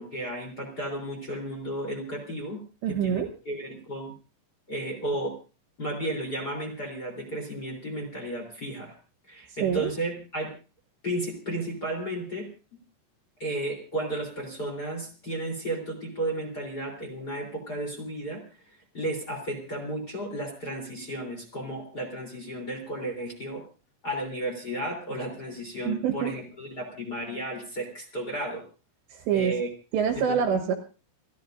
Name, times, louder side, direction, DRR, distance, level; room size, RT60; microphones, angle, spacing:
voice 1, 0.0-2.6 2.9-4.1 4.7-5.4 5.8-8.9 9.3-10.5 11.0-12.5 13.4-18.4 18.9-23.6 24.0-28.6 29.3-29.7 30.1-30.2, right 1 dB, 25° left, 2 dB, 3.1 m, -33 dB
voice 2, 2.8-3.3 9.6-9.9 25.8-26.3 29.1-29.6 29.9-30.7, right 7 dB, 70° right, 5 dB, 3.1 m, -26 dB
29.5 x 13.0 x 2.6 m, 0.35 s
omnidirectional pair, 5.9 m